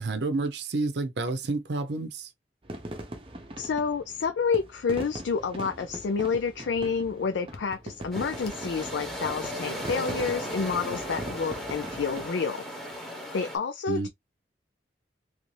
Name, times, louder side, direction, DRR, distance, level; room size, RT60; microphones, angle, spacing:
voice 1, 0.0-2.3 13.9-14.1, right 3 dB, 70° right, 0.6 m, -29 dB
sound 1, 2.6-12.3, right 1 dB, 30° right, 0.7 m, -41 dB
voice 2, 3.6-12.6 13.3-14.1, left 5 dB, 85° left, 0.4 m, -29 dB
sound 2, 6.8-8.8 9.1-9.5 9.8-10.3 10.6-10.8 11.2-11.3 12.0-12.4, left 2 dB, 55° left, 0.8 m, -48 dB
sound 3, 8.1-13.6, equal, ahead, 1.0 m, -36 dB
3.2 x 2.6 x 3.1 m
head